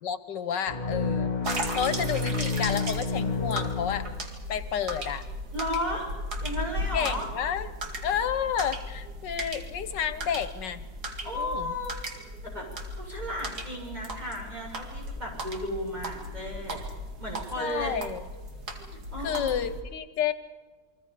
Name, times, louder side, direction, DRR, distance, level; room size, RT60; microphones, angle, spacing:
voice 1, 0.0-4.1 4.5-5.2 6.9-7.7 8.0-10.9 11.3-11.7 17.6-18.2 19.2-20.3, left 8 dB, 90° left, 13 dB, 1.8 m, -30 dB
sound 1, 0.7-4.5, left 4 dB, 25° left, 2.0 m, -30 dB
sound 2, 1.4-19.8, equal, 65° right, 2.7 m, -37 dB
voice 2, 5.5-6.1 6.4-7.3 11.2-11.9 12.4-12.7 12.9-16.8 17.2-18.0 19.1-19.7, equal, 25° right, -2 dB, 7.0 m, -34 dB
29.0 x 23.0 x 5.1 m, 1.3 s
omnidirectional pair, 1.9 m